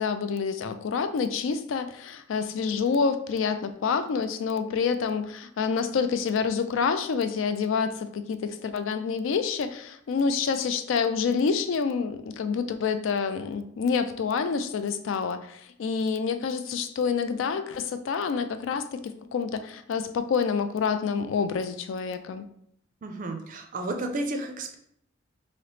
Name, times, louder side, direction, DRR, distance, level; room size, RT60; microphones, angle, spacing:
voice 1, 0.0-19.0 19.3-22.5, left 5 dB, 70° left, 10 dB, 0.3 m, -27 dB
voice 2, 23.0-24.7, right 2 dB, 40° right, 4 dB, 0.4 m, -32 dB
3.0 x 2.8 x 3.1 m, 0.70 s
head